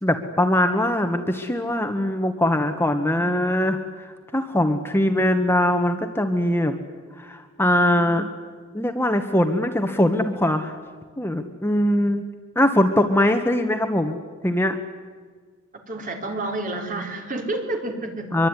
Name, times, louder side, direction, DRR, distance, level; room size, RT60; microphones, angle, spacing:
voice 1, 0.0-3.8 4.3-6.8 7.2-8.3 8.7-10.7 11.2-12.2 12.5-14.2 14.4-14.8 18.3-18.5, left 1 dB, 10° left, 6 dB, 1.5 m, -21 dB
voice 2, 15.8-18.4, right 2 dB, 40° right, 3 dB, 4.6 m, -29 dB
24.5 x 24.0 x 10.0 m, 1.5 s
head